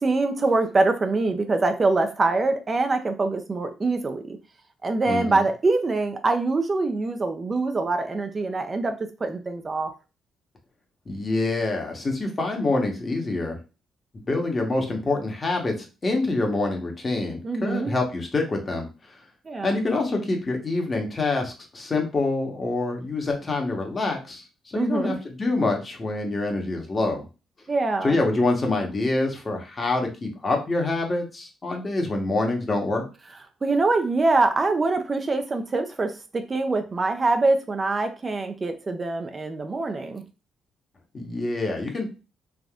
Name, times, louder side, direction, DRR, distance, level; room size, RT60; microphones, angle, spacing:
voice 1, 0.0-4.4 4.8-9.9 17.4-17.9 19.5-19.8 24.7-25.1 27.7-28.2 33.6-40.2, right 3 dB, 30° right, 7 dB, 0.4 m, -24 dB
voice 2, 5.0-5.4 11.1-13.6 14.1-18.9 19.6-27.3 28.0-33.0 41.1-42.1, left 2 dB, 30° left, 2 dB, 1.0 m, -26 dB
3.4 x 2.5 x 2.3 m, 0.31 s
cardioid pair, 90°, 0 cm